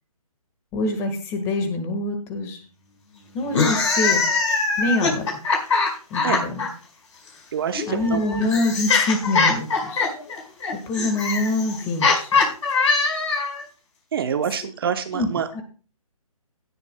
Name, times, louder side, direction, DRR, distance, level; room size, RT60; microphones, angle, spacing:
voice 1, 0.7-2.6 3.3-4.2 4.8-5.4 6.1-6.7 7.9-10.1 10.7-12.4 14.6-14.7 15.1-15.6, left 2 dB, 15° left, 7 dB, 1.5 m, -25 dB
sound 1, 3.4-6.7 7.7-13.6, left 4 dB, 55° left, 4.9 m, -22 dB
voice 2, 7.5-8.2 14.1-15.6, right 7 dB, 40° right, 9 dB, 0.9 m, -26 dB
16.5 x 10.5 x 2.2 m, 0.37 s
hypercardioid pair, 155°, 19 cm